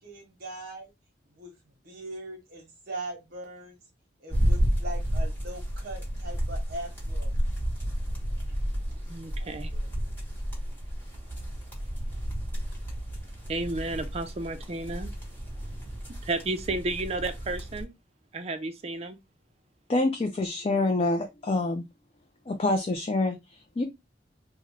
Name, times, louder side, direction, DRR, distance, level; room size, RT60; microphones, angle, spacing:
voice 1, 0.0-0.9 1.4-1.5 1.8-3.8 4.2-7.3 9.4-9.9, right 2 dB, 60° right, 1.0 m, -41 dB
sound 1, 4.3-17.8, equal, 10° left, 1.2 m, -31 dB
voice 2, 9.1-9.7 13.5-15.1 16.2-17.9 18.3-19.2, right 2 dB, 35° right, 0.5 m, -32 dB
voice 3, 19.9-21.8 22.5-23.8, left 2 dB, 30° left, 0.4 m, -26 dB
3.6 x 2.1 x 3.2 m
head